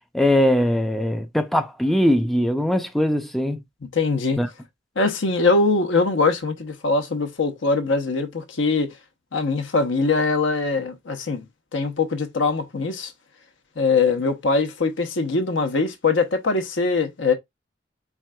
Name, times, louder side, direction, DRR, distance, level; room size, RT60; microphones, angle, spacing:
voice 1, 0.1-3.6 4.4-4.5, left 1 dB, ahead, 0.4 m, -21 dB
voice 2, 3.9-4.4 5.0-8.9 9.3-11.5 11.7-13.1 13.8-17.3, left 3 dB, 75° left, 0.9 m, -22 dB
4.5 x 3.6 x 2.2 m
head